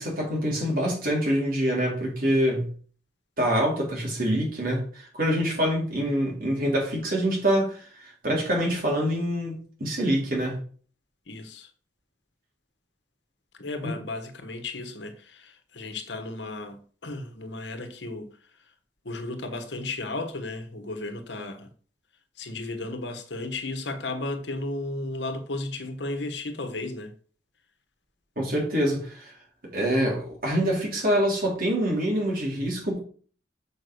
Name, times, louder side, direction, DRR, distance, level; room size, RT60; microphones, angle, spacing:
voice 1, 0.0-2.7 3.4-10.6 13.8-13.9 28.4-29.3 29.7-33.0, equal, 50° right, 4.1 m, -25 dB
voice 2, 11.3-11.7 13.5-18.3 19.0-21.7 22.4-27.1, left 2 dB, 70° left, 1.3 m, -34 dB
6.8 x 5.2 x 6.4 m
head